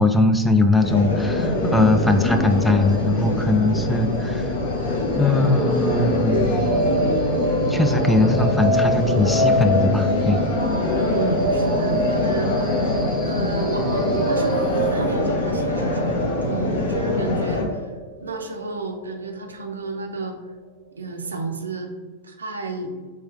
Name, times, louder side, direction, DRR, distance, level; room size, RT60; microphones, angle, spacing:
voice 1, 0.0-4.5 5.2-6.5 7.7-10.4, left 2 dB, 5° left, 6 dB, 0.3 m, -20 dB
sound 1, 0.8-17.6, left 2 dB, 65° left, 0.7 m, -24 dB
sound 2, 5.5-19.5, right 1 dB, 15° right, 0.8 m, -26 dB
voice 2, 11.0-12.9 13.1-17.9 18.2-20.4 20.9-21.9 22.2-22.9, right 3 dB, 75° right, 4 dB, 0.5 m, -31 dB
3.4 x 3.1 x 4.3 m, 1.4 s
figure-of-eight pair, 90°, 0 cm